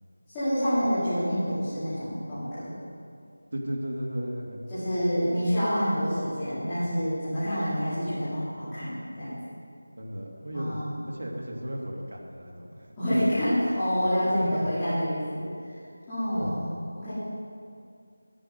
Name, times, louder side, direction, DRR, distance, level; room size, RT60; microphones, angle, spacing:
voice 1, 0.3-2.7 4.7-9.4 10.5-11.0 13.0-15.8 16.1-17.1, equal, 10° left, -18 dB, 2.4 m, -28 dB
voice 2, 3.5-4.6 10.0-13.2 14.3-14.7 16.3-16.7, equal, 65° right, -1 dB, 2.4 m, -35 dB
12.0 x 10.0 x 5.3 m, 2.4 s
figure-of-eight pair, 180°, 0 cm